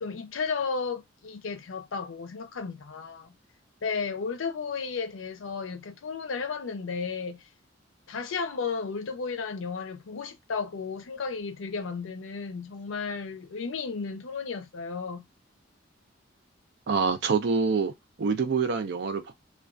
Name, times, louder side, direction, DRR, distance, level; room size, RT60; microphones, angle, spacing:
voice 1, 0.0-3.3 3.8-7.4 8.1-15.2, left 5 dB, 75° left, 0.5 m, -33 dB
voice 2, 16.9-17.9 18.2-19.3, right 5 dB, 60° right, 0.5 m, -26 dB
2.3 x 2.3 x 2.4 m
head